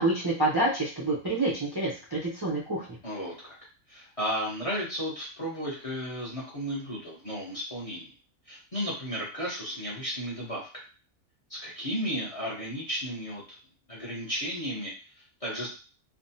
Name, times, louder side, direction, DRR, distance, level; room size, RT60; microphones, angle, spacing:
voice 1, 0.0-2.9, right 2 dB, 30° right, -8 dB, 0.4 m, -27 dB
voice 2, 3.0-3.6 3.9-8.1 8.5-10.7 11.5-13.6 13.9-15.7, equal, 35° left, -5 dB, 0.6 m, -34 dB
3.4 x 2.1 x 2.7 m, 0.36 s
omnidirectional pair, 1.5 m